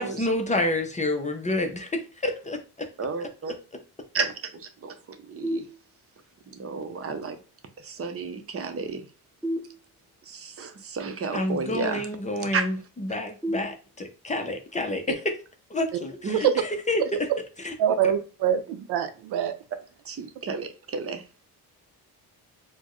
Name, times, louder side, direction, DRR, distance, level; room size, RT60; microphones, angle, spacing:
voice 1, 0.0-2.9 11.3-15.3 15.7-17.0 17.6-17.7, left 1 dB, 20° left, 0.5 m, -29 dB
voice 2, 3.0-3.5 4.1-5.6 6.5-7.4 7.8-9.1 10.3-12.1 12.4-12.7 16.2-16.5 20.0-21.2, right 4 dB, 35° right, 0.7 m, -32 dB
sound 1, 5.4-6.4 9.4-10.4 13.4-14.4, equal, 5° right, 1.2 m, -34 dB
voice 3, 17.8-19.5, right 9 dB, 80° right, 0.6 m, -24 dB
4.2 x 2.1 x 3.0 m
cardioid pair, 125°, 39 cm